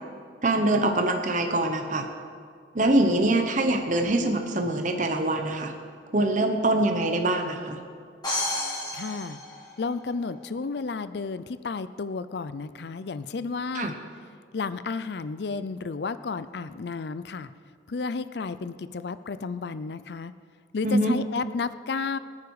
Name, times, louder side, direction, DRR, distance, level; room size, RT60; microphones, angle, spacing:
voice 1, 0.4-2.1 2.7-5.7 6.1-7.8 13.7-14.0 20.8-21.1, right 1 dB, 45° right, 4 dB, 1.0 m, -24 dB
sound 1, 8.2-10.2, left 1 dB, 25° left, 4.6 m, -31 dB
voice 2, 8.9-9.4 9.8-14.0 14.5-17.5 17.9-20.3 20.7-22.2, left 4 dB, 65° left, 14 dB, 0.5 m, -32 dB
24.5 x 9.6 x 4.8 m, 2.1 s
head